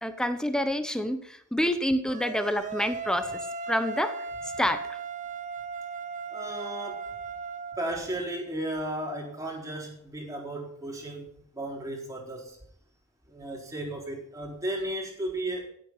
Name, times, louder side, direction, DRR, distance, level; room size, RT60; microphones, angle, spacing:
voice 1, 0.0-3.4 3.7-4.1 4.6-4.8, equal, 5° left, 9 dB, 1.1 m, -27 dB
sound 1, 2.1-7.9, right 4 dB, 35° right, 0.8 m, -37 dB
voice 2, 6.3-7.1 7.8-12.6 13.3-15.7, right 1 dB, 15° right, -1 dB, 3.9 m, -35 dB
16.0 x 8.3 x 5.8 m, 0.68 s
head